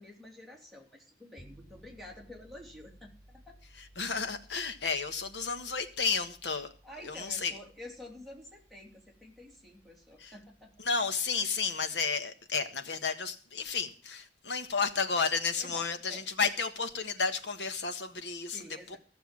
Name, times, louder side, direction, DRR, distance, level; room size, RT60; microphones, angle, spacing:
voice 1, 0.0-3.6 6.8-10.7 15.6-16.3 18.5-19.0, left 1 dB, ahead, 3.0 m, -49 dB
sound 1, 1.4-11.5, right 1 dB, 30° right, 6.3 m, -59 dB
voice 2, 3.8-6.7 7.0-7.6 10.2-10.3 10.8-18.6 18.9-19.0, left 5 dB, 85° left, 1.5 m, -32 dB
15.0 x 6.9 x 7.3 m
head